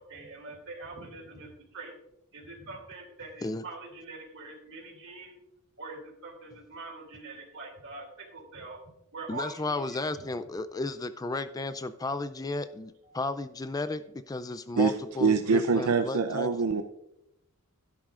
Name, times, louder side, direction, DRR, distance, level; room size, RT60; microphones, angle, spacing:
voice 1, 0.0-1.9 2.3-5.4 5.8-8.8 9.1-10.3 13.0-13.2, right 3 dB, 60° right, 3.0 m, -44 dB
voice 2, 9.3-16.5, left 2 dB, 15° left, 0.3 m, -34 dB
voice 3, 14.8-16.8, right 5 dB, 85° right, 0.6 m, -25 dB
12.0 x 11.0 x 2.5 m
head